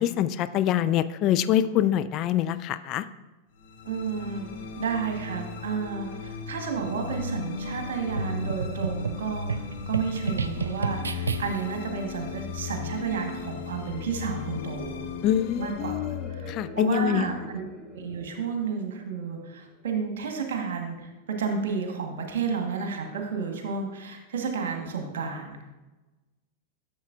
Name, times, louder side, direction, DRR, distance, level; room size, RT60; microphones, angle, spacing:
voice 1, 0.0-3.1 15.2-17.3, left 11 dB, 35° left, 13 dB, 0.3 m, -25 dB
sound 1, 3.6-17.9, left 4 dB, 55° left, 1.0 m, -37 dB
voice 2, 3.8-4.5 4.8-15.1 15.6-15.9 16.3-17.7 17.9-25.6, right 5 dB, 60° right, 4 dB, 1.4 m, -31 dB
sound 2, 6.6-20.2, left 1 dB, ahead, 1.1 m, -48 dB
sound 3, 8.2-11.8, right 5 dB, 75° right, 0.3 m, -32 dB
11.0 x 6.9 x 2.6 m, 1.1 s
figure-of-eight pair, 90°, 0 cm